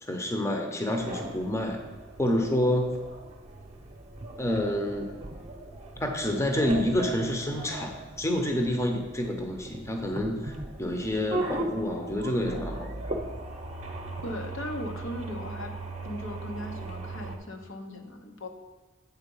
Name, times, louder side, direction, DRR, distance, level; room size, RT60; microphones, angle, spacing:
voice 1, 0.0-1.8 2.2-2.9 4.4-5.1 6.0-10.5 10.8-13.0, left 1 dB, 15° left, 3 dB, 0.7 m, -28 dB
sound 1, 1.0-17.4, right 2 dB, 35° right, 0.7 m, -38 dB
voice 2, 14.2-15.7 16.0-18.5, left 1 dB, 80° left, 4 dB, 0.8 m, -38 dB
8.1 x 3.8 x 5.4 m, 1.3 s
head